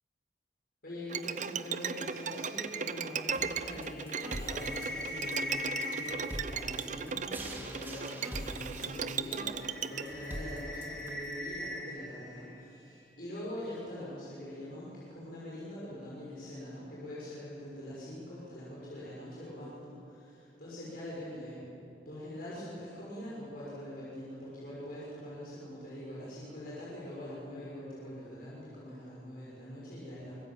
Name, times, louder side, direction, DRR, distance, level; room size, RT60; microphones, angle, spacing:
voice 1, 0.8-9.6 9.9-21.7 22.0-30.3, left 1 dB, 60° left, -7 dB, 6.1 m, -43 dB
Bowed string instrument, 1.1-10.0, right 6 dB, 45° right, 0.7 m, -37 dB
sound 1, 1.9-8.7 9.1-13.1, left 1 dB, 5° left, 5.3 m, -43 dB
sound 2, 3.3-11.3, equal, 10° right, 2.3 m, -45 dB
25.0 x 21.5 x 7.4 m, 2.8 s
head